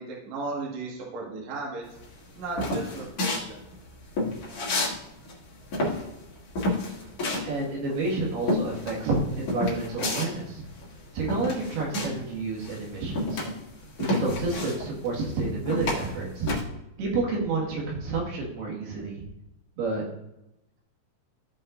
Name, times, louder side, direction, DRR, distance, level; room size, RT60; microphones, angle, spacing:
voice 1, 0.0-1.9 2.4-3.6, right 3 dB, 55° right, -3 dB, 2.8 m, -35 dB
sound 1, 2.0-5.0 5.2-12.3 12.6-16.6, left 2 dB, 45° left, 2.2 m, -30 dB
voice 2, 7.4-10.6 11.1-13.4 14.0-16.5 17.0-19.2 19.8-20.1, right 3 dB, 80° right, -3 dB, 3.9 m, -29 dB
15.0 x 5.5 x 2.6 m, 0.88 s
omnidirectional pair, 4.5 m